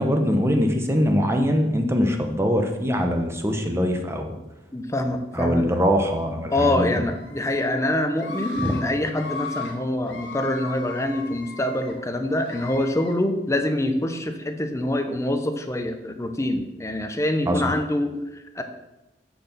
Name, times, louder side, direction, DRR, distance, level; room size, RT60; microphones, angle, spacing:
voice 1, 0.0-4.3 5.3-6.8 8.6-8.7 17.5-17.6, equal, 15° right, 4 dB, 1.0 m, -22 dB
voice 2, 4.7-5.7 6.5-18.6, left 1 dB, 15° left, 6 dB, 0.8 m, -25 dB
Screaming, 7.0-7.6 8.1-8.8 9.1-9.7 10.1-11.9 12.4-13.1, left 4 dB, 90° left, 1.9 m, -37 dB
6.6 x 5.9 x 6.7 m, 0.98 s
head